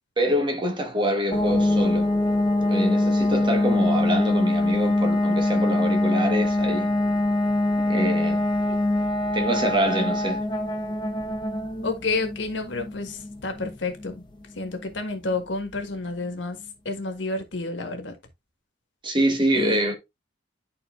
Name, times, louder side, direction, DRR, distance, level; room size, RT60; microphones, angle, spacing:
voice 1, 0.2-2.1 2.7-6.9 7.9-8.4 9.3-10.4 19.0-19.9, right 1 dB, 25° right, 1.4 m, -25 dB
sound 1, 1.3-15.9, left 1 dB, 25° left, 1.1 m, -24 dB
voice 2, 11.8-14.2 14.6-16.6 16.8-18.1 19.5-19.9, left 3 dB, 70° left, 1.6 m, -30 dB
11.0 x 4.2 x 2.5 m
head